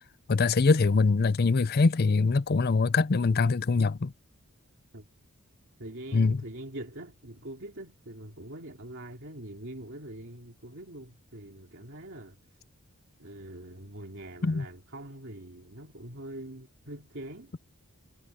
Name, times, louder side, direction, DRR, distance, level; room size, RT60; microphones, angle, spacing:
voice 1, 0.3-4.1 6.1-6.4 14.4-14.6, left 4 dB, 45° left, 0.5 m, -23 dB
voice 2, 5.8-12.4 13.2-17.5, right 1 dB, 55° right, 3.1 m, -43 dB
head